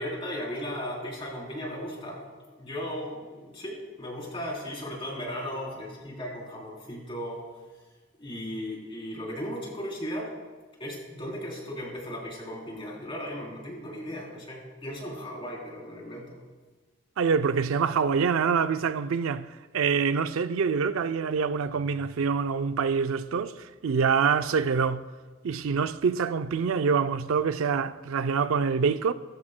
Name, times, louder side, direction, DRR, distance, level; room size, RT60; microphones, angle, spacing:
voice 1, 0.0-7.4 8.2-10.4 10.8-16.3, equal, 25° left, 3.5 m, -36 dB
voice 2, 17.2-19.5 19.7-25.0 25.4-29.1, right 5 dB, 75° right, 0.4 m, -25 dB
20.5 x 12.5 x 2.2 m
head